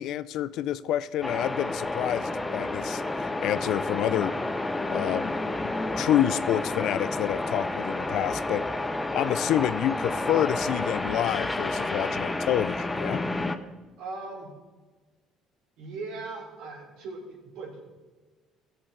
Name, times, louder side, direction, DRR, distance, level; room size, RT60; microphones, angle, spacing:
voice 1, 0.0-4.3 4.9-5.3 5.6-8.6 9.1-13.2, left 12 dB, 70° left, 16 dB, 0.4 m, -28 dB
sound 1, 1.2-13.6, left 2 dB, 15° left, 0.7 m, -30 dB
voice 2, 14.0-14.5 15.8-17.9, right 3 dB, 85° right, 0 dB, 3.1 m, -39 dB
16.0 x 6.9 x 4.2 m, 1.3 s
cardioid pair, 100°, 0 cm